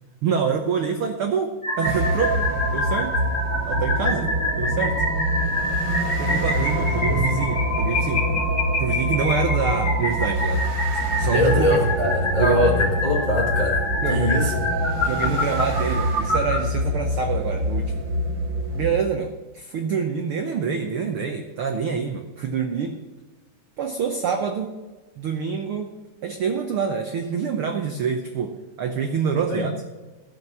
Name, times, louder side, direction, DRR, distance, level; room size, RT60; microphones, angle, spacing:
voice 1, 0.2-2.4 2.7-3.2 3.6-5.0 6.2-8.5 8.8-10.6 11.2-11.9 12.4-12.7 14.0-14.5 15.0-18.0 18.7-23.0 23.8-24.7 25.2-25.9 26.2-29.8, right 6 dB, 85° right, 4 dB, 1.2 m, -26 dB
sound 1, 1.6-16.6, left 1 dB, 25° left, 2.4 m, -27 dB
sound 2, 1.8-19.0, equal, 55° right, 1.3 m, -25 dB
voice 2, 11.3-14.8 29.5-29.7, left 1 dB, 65° left, -1 dB, 0.4 m, -23 dB
15.0 x 7.3 x 6.0 m, 1.2 s
omnidirectional pair, 3.7 m